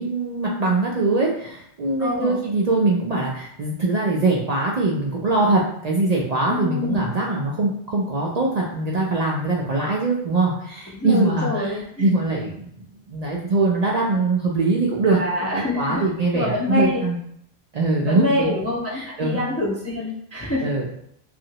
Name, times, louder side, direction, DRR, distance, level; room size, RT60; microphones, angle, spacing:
voice 1, 0.0-11.7 12.0-15.2 15.5-17.2 17.7-18.5 18.9-19.4 20.6-20.9, right 2 dB, 55° right, -3 dB, 0.4 m, -22 dB
voice 2, 2.0-2.4 6.5-7.1 10.9-12.1 15.1-16.0 16.3-17.0 18.0-20.7, left 1 dB, 25° left, -5 dB, 0.3 m, -26 dB
2.9 x 2.4 x 2.8 m, 0.70 s
omnidirectional pair, 1.1 m